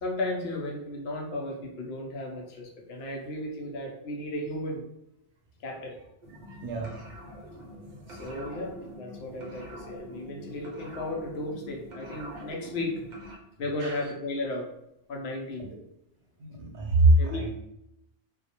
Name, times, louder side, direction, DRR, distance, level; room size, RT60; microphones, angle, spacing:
voice 1, 0.0-4.8 5.6-6.0 8.1-13.0 13.6-14.7 15.1-15.6 17.2-17.5, left 1 dB, 70° left, 0 dB, 0.8 m, -34 dB
sound 1, 6.2-13.4, equal, 50° right, 0.6 m, -44 dB
voice 2, 6.4-7.0 7.7-8.2 9.4-9.5 12.3-12.4 13.8-14.1 16.4-17.5, right 2 dB, 85° right, 1 dB, 0.9 m, -26 dB
2.3 x 2.0 x 2.8 m, 0.81 s
omnidirectional pair, 1.2 m